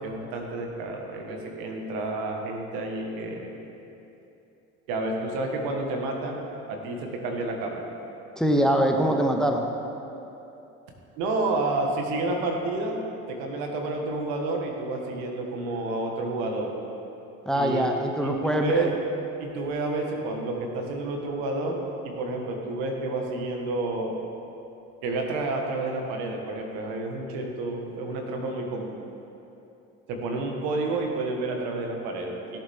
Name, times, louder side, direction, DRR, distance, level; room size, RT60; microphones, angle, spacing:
voice 1, 0.0-3.6 4.9-6.4 6.7-7.9 11.2-13.0 13.3-16.7 17.5-17.9 18.2-18.9 19.4-24.2 25.0-29.0 30.1-32.6, right 2 dB, 80° right, 1 dB, 1.6 m, -30 dB
voice 2, 8.4-9.7 17.5-18.9, equal, ahead, 3 dB, 1.0 m, -23 dB
16.5 x 7.4 x 3.6 m, 2.9 s
supercardioid pair, 75°, 35 cm